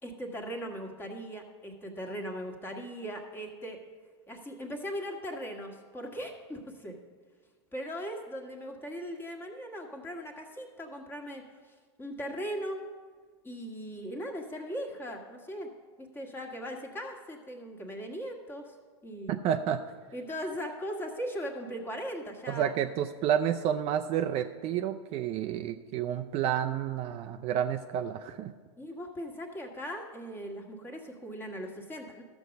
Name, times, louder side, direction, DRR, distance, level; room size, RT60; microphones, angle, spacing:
voice 1, 0.0-3.8 4.3-6.9 7.7-12.8 13.4-15.7 16.0-18.7 19.0-19.4 20.1-22.7 28.8-32.2, equal, 15° left, 2 dB, 1.5 m, -39 dB
voice 2, 19.3-19.8 22.5-28.5, right 9 dB, 40° right, 6 dB, 0.5 m, -30 dB
12.5 x 7.0 x 5.2 m, 1.5 s
hypercardioid pair, 120°, 16 cm